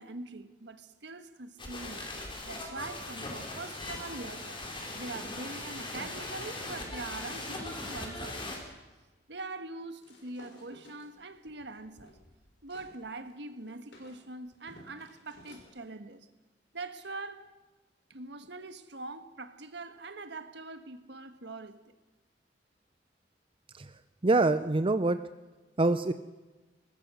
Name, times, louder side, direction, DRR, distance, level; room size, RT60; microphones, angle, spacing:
voice 1, 0.0-2.1 2.4-4.6 4.9-8.8 9.3-12.2 12.6-16.3 16.7-17.5 18.1-21.9, right 3 dB, 70° right, 1.6 m, -43 dB
sound 1, 1.6-8.6, left 2 dB, 30° left, 4.3 m, -40 dB
sound 2, 10.0-12.9 13.3-15.7, left 1 dB, 85° left, 5.3 m, -56 dB
voice 2, 24.2-25.2 25.8-26.1, right 2 dB, 30° right, 0.6 m, -25 dB
23.0 x 19.5 x 6.3 m
head